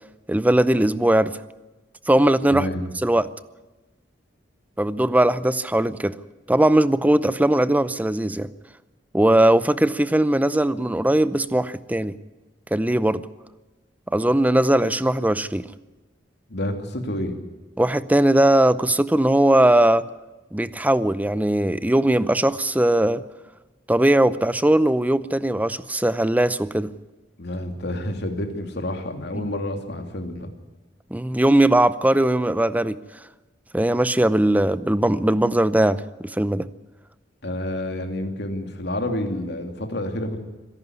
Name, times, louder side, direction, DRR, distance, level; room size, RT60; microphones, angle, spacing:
voice 1, 0.3-1.4 2.1-2.7 3.0-3.3 4.8-6.2 6.5-8.5 9.1-12.1 12.7-13.2 14.1-15.7 17.8-20.1 20.5-23.2 23.9-26.9 29.3-29.4 31.1-33.0 33.7-36.7, right 1 dB, 10° right, 0.6 m, -19 dB
voice 2, 2.5-2.8 16.5-17.4 27.4-30.5 37.4-40.4, left 1 dB, 65° left, 2.8 m, -29 dB
25.0 x 11.5 x 9.6 m
head